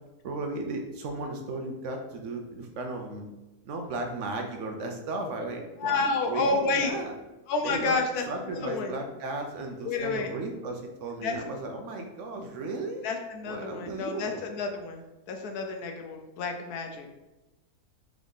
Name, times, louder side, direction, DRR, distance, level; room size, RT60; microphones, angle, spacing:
voice 1, 0.2-3.3 3.7-7.1 7.6-8.0 8.3-13.1 13.4-14.5, right 2 dB, 65° right, 3 dB, 0.8 m, -35 dB
voice 2, 5.8-6.9 7.5-8.3 8.5-8.9 9.8-10.3 11.2-11.4 13.0-15.0 15.3-17.1, left 3 dB, 90° left, 4 dB, 1.2 m, -29 dB
3.9 x 3.5 x 3.6 m, 1.0 s
omnidirectional pair, 1.6 m